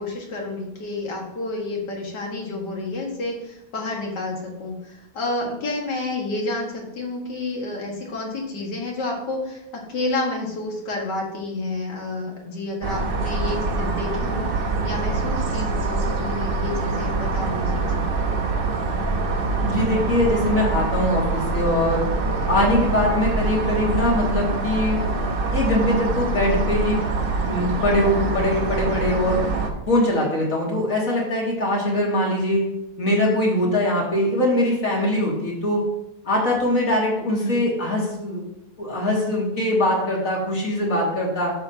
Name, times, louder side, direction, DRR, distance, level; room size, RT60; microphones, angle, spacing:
voice 1, 0.0-18.1 37.2-37.6, left 2 dB, 80° left, -1 dB, 2.5 m, -30 dB
sound 1, 12.8-29.7, right 3 dB, 40° right, 0.9 m, -24 dB
voice 2, 19.6-22.1 22.5-25.0 25.5-29.4 29.9-32.6 33.0-35.8 36.2-38.4 38.8-41.5, left 1 dB, 50° left, -3 dB, 2.8 m, -22 dB
11.5 x 7.1 x 2.9 m, 0.86 s
omnidirectional pair, 1.8 m